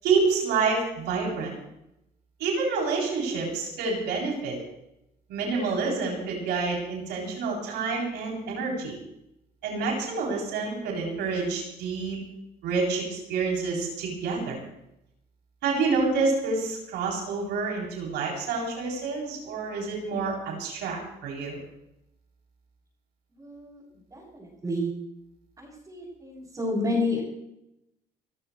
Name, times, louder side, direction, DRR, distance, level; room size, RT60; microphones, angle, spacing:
voice 1, 0.0-1.5 2.4-4.6 5.3-9.0 9.6-12.2 12.6-14.6 15.6-21.6, right 4 dB, 85° right, -2 dB, 7.8 m, -28 dB
voice 2, 23.4-23.8 24.1-24.9 25.6-27.2, left 2 dB, 20° right, -7 dB, 8.0 m, -30 dB
30.0 x 13.5 x 3.3 m, 0.83 s
cardioid pair, 110°, 17 cm